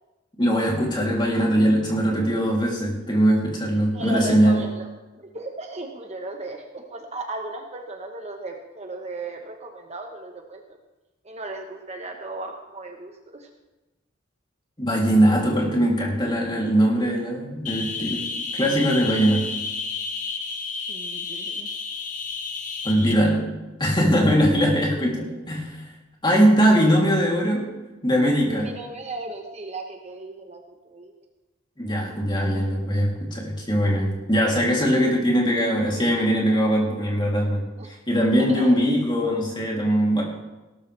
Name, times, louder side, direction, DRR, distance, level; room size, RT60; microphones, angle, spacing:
voice 1, 0.4-4.6 14.8-19.5 22.8-23.5 23.8-25.8 26.2-27.7 28.0-28.7 31.8-40.2, equal, 25° left, -2 dB, 3.1 m, -21 dB
voice 2, 3.9-4.9 5.1-10.6 11.2-13.5 20.9-21.7 28.6-31.1 37.8-37.9 38.5-38.7, right 2 dB, 35° right, 3 dB, 1.1 m, -36 dB
sound 1, 17.7-23.1, left 4 dB, 40° left, 1.3 m, -31 dB
17.5 x 13.0 x 3.4 m, 1.1 s
head